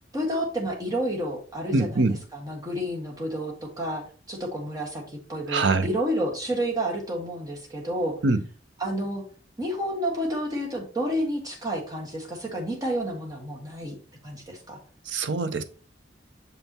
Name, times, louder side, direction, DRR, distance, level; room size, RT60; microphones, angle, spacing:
voice 1, 0.1-2.0 2.3-4.0 4.3-8.1 8.8-9.2 9.6-13.9 14.2-14.8, equal, 20° right, 1.6 m, -30 dB
voice 2, 1.7-2.2 5.5-5.9 8.2-8.4 15.1-15.6, right 3 dB, 75° right, 0.7 m, -23 dB
6.8 x 5.3 x 2.9 m
head